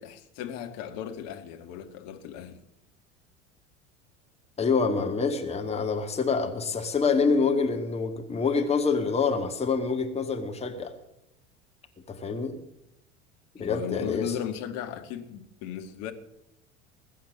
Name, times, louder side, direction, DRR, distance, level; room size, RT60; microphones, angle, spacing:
voice 1, 0.0-2.6 13.6-16.1, left 9 dB, 45° left, 1.8 m, -36 dB
voice 2, 4.6-10.9 12.1-12.6 13.6-14.3, left 5 dB, 15° left, 1.9 m, -26 dB
20.5 x 8.6 x 7.4 m
figure-of-eight pair, 75°, 36 cm